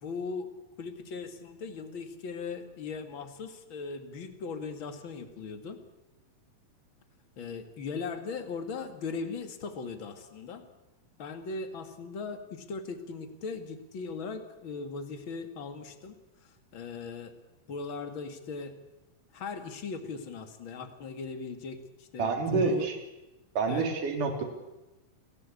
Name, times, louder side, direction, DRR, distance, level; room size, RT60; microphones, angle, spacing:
voice 1, 0.0-0.5 0.8-5.8 7.4-10.7 11.2-16.2 16.7-17.3 17.7-18.7 19.3-22.9 23.7-23.9, left 4 dB, 40° left, 7 dB, 2.6 m, -39 dB
voice 2, 22.2-23.0 23.6-24.4, right 4 dB, 70° right, 4 dB, 4.8 m, -28 dB
30.0 x 17.5 x 8.5 m, 1.0 s
omnidirectional pair, 3.8 m